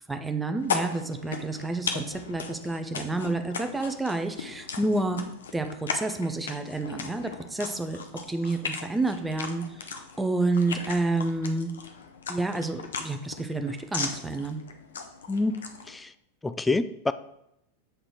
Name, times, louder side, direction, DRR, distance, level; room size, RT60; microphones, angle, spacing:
voice 1, 0.1-5.2 5.5-8.0 8.3-9.8 10.2-11.7 12.3-14.6, right 2 dB, 5° right, 7 dB, 0.7 m, -29 dB
sound 1, 0.6-16.0, left 5 dB, 65° left, 0.8 m, -37 dB
voice 2, 15.3-15.6 15.9-16.1 16.4-17.1, left 3 dB, 10° left, 13 dB, 0.3 m, -27 dB
7.9 x 3.9 x 4.5 m, 0.80 s
figure-of-eight pair, 90°, 0 cm